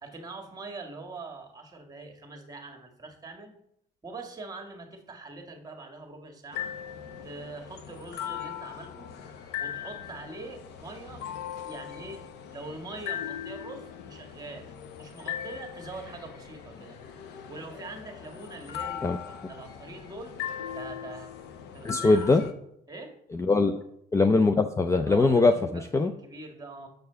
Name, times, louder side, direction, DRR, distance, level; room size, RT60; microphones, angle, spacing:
voice 1, 0.0-3.5 4.0-6.7 7.2-12.2 12.5-17.0 17.5-20.3 20.7-21.3 21.7-22.4 22.9-23.2 25.1-26.9, right 3 dB, 20° right, 4 dB, 1.7 m, -43 dB
sound 1, 6.5-22.5, left 9 dB, 80° left, 0.9 m, -39 dB
voice 2, 21.8-22.4 23.3-23.7 24.1-25.5 25.9-26.1, left 3 dB, 15° left, 7 dB, 0.4 m, -21 dB
6.4 x 4.7 x 6.7 m, 0.74 s
cardioid pair, 110°, 17 cm